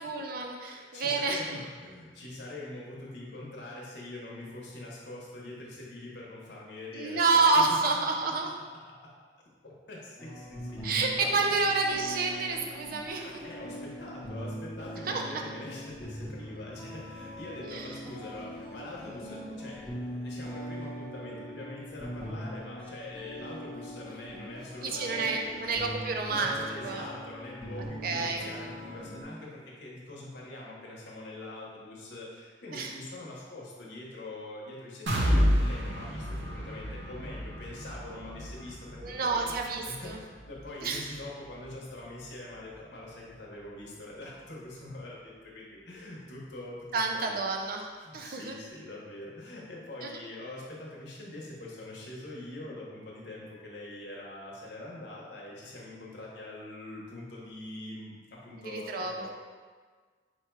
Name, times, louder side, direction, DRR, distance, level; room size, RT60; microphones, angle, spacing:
voice 1, 0.0-1.4 6.9-8.5 10.8-13.2 15.1-15.2 17.6-17.9 24.8-26.6 26.8-27.0 28.0-28.5 32.7-32.9 39.0-40.2 40.8-41.0 46.9-47.8 48.1-48.6 50.0-50.1 58.6-59.2, right 3 dB, 55° right, 2 dB, 0.5 m, -29 dB
voice 2, 0.6-7.6 8.1-8.5 9.6-10.8 11.2-11.6 13.1-25.7 26.3-47.5 48.0-59.3, left 2 dB, 70° left, -4 dB, 0.9 m, -44 dB
sound 1, 10.2-29.2, equal, 5° left, 0.8 m, -41 dB
sound 2, 35.1-42.8 43.2-43.4 43.8-43.9, equal, 90° right, 0.7 m, -31 dB
4.5 x 2.3 x 4.5 m, 1.5 s
head